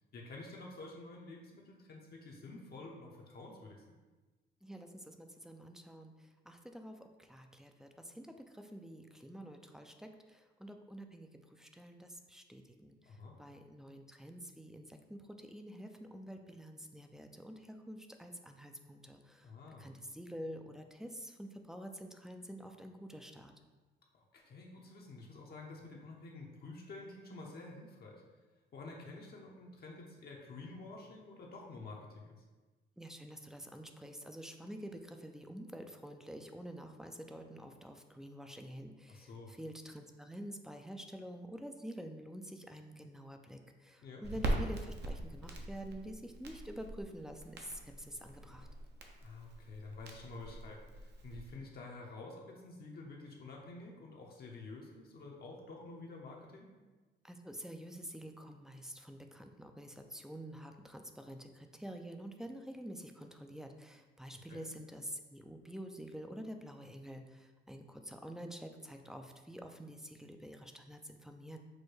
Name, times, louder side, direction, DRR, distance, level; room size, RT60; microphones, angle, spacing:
voice 1, 0.1-3.8 13.1-13.3 19.4-19.9 24.1-28.2 28.7-32.4 39.1-39.5 44.0-44.2 49.2-56.7 64.5-64.6, left 3 dB, 50° left, -1 dB, 0.7 m, -49 dB
voice 2, 4.6-19.5 19.8-23.5 33.0-48.7 57.2-71.6, equal, ahead, 5 dB, 0.3 m, -48 dB
Crackle, 44.2-51.6, right 1 dB, 60° right, 0.7 m, -42 dB
6.2 x 2.2 x 3.2 m, 1.2 s
cardioid pair, 90°, 20 cm